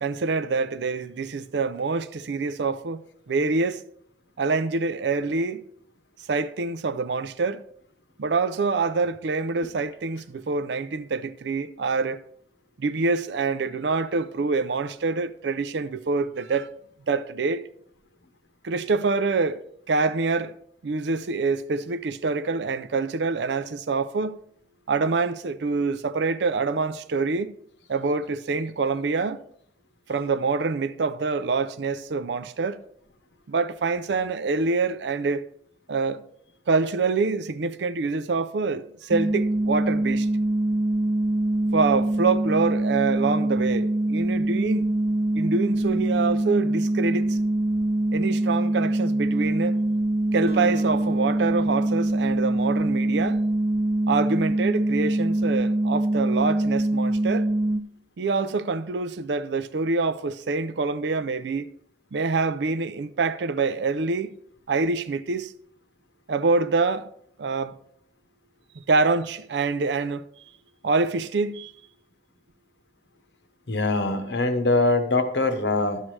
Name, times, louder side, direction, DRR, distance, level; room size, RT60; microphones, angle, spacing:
voice 1, 0.0-3.0 3.3-3.8 4.4-5.6 6.3-7.6 8.2-12.2 12.8-16.7 17.1-17.7 18.6-19.6 19.9-20.5 20.8-24.4 24.9-27.5 27.9-29.4 30.1-32.8 33.5-35.4 35.9-36.2 36.7-40.3 41.7-45.0 45.3-47.4 48.1-49.8 50.3-53.4 54.1-57.5 58.2-61.7 62.1-64.3 64.7-65.5 66.3-67.1 67.4-67.7 68.8-70.3 70.8-71.7, right 4 dB, 75° right, 0.5 m, -26 dB
sound 1, 39.1-57.8, right 1 dB, 10° right, 0.3 m, -24 dB
Acoustic guitar, 50.5-53.2, equal, 35° right, 1.0 m, -42 dB
voice 2, 73.7-76.0, left 2 dB, 75° left, 0.9 m, -23 dB
11.0 x 7.4 x 3.2 m
head